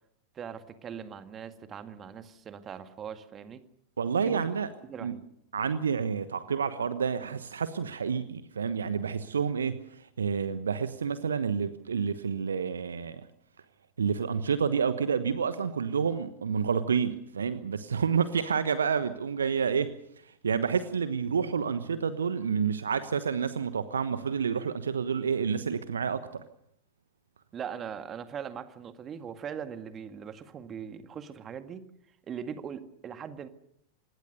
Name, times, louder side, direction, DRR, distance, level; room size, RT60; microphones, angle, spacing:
voice 1, 0.3-3.6 4.2-4.4 4.8-5.2 27.5-31.9 32.3-33.5, right 7 dB, 25° right, 10 dB, 1.9 m, -40 dB
voice 2, 4.0-4.7 5.0-5.1 5.5-13.2 14.0-19.9 20.4-26.4, right 6 dB, 70° right, 13 dB, 1.1 m, -29 dB
26.0 x 20.5 x 6.7 m, 0.72 s
figure-of-eight pair, 90°, 0 cm